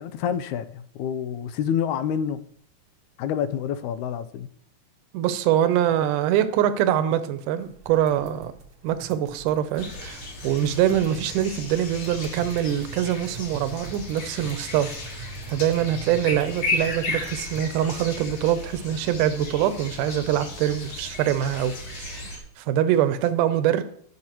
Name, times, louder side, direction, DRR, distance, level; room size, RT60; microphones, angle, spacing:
voice 1, 0.0-2.4 3.2-4.5, left 8 dB, 80° left, 2.0 m, -28 dB
voice 2, 5.1-8.5 8.8-23.8, right 11 dB, 85° right, 2.3 m, -24 dB
sound 1, 7.6-17.6, right 5 dB, 60° right, 1.2 m, -45 dB
sound 2, 9.8-22.4, left 2 dB, 65° left, 3.7 m, -35 dB
19.5 x 6.5 x 3.0 m
omnidirectional pair, 3.7 m